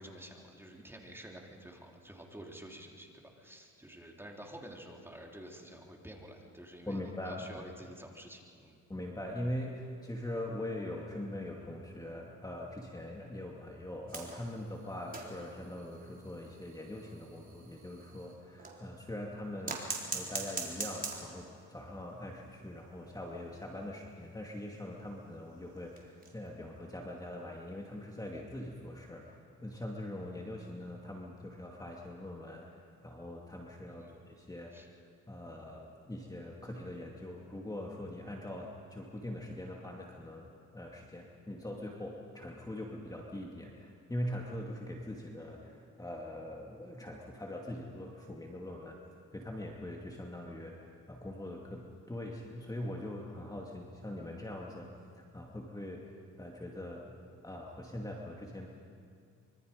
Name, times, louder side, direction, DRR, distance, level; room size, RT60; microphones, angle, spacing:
voice 1, 0.0-8.8 33.9-34.1 34.7-34.9, right 1 dB, 10° right, 0 dB, 3.4 m, -50 dB
voice 2, 6.9-7.7 8.9-34.9 35.3-49.0 49.3-57.2 57.4-58.7, left 1 dB, 10° left, -1 dB, 2.5 m, -42 dB
sound 1, 14.1-18.9 19.6-21.6 21.9-22.0 22.3-22.4 22.7-22.8 23.4-26.5 27.0-27.2 28.4-28.5, right 3 dB, 30° right, 4.0 m, -43 dB
25.5 x 24.5 x 5.3 m, 2.3 s
cardioid pair, 90°, 30 cm